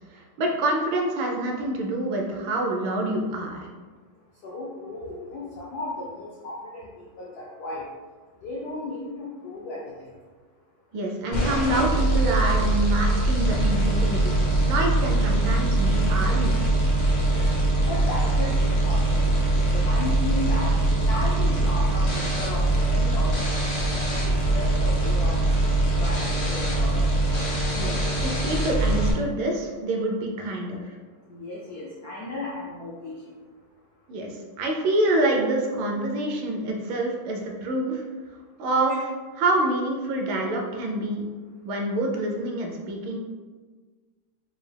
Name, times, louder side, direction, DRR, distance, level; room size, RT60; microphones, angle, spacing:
voice 1, 0.1-3.7 10.9-14.4 14.6-16.6 27.7-30.9 34.1-38.0 38.6-38.9 39.4-41.3 41.6-43.2, right 1 dB, 75° right, 1 dB, 1.3 m, -26 dB
voice 2, 4.4-7.8 8.4-10.1 17.2-17.3 17.8-23.7 24.2-25.4 25.8-27.1 31.3-33.3 38.9-39.0, left 2 dB, 80° left, -3 dB, 0.8 m, -35 dB
sound 1, 11.3-29.1, right 1 dB, 50° left, 0.6 m, -22 dB
4.7 x 2.3 x 3.2 m, 1.4 s
omnidirectional pair, 2.3 m